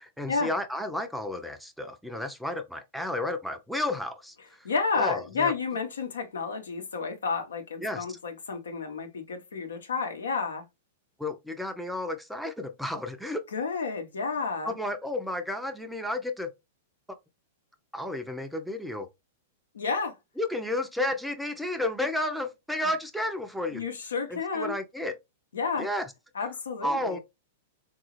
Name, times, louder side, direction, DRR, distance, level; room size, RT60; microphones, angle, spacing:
voice 1, 0.0-4.7 4.9-5.5 7.8-8.0 11.2-13.4 14.6-16.5 17.9-19.1 20.4-23.8 24.3-25.2 25.8-26.1 26.8-27.2, left 1 dB, ahead, 0.5 m, -32 dB
voice 2, 4.6-10.6 13.5-14.7 19.7-20.2 23.7-24.7 25.5-25.9 26.3-27.2, left 4 dB, 75° left, 0.8 m, -31 dB
3.8 x 2.3 x 3.0 m
figure-of-eight pair, 100°, 0 cm